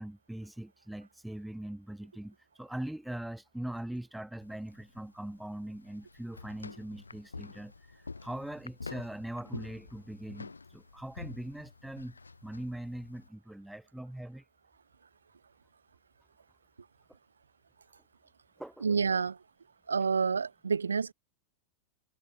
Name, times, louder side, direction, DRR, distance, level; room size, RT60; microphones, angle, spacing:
voice 1, 0.0-14.4 18.6-18.9, right 1 dB, 5° right, 1.9 m, -41 dB
sound 1, 4.4-13.3, left 4 dB, 80° left, 0.7 m, -47 dB
voice 2, 18.8-19.4 19.9-21.1, right 5 dB, 75° right, 0.4 m, -28 dB
figure-of-eight pair, 90°, 0 cm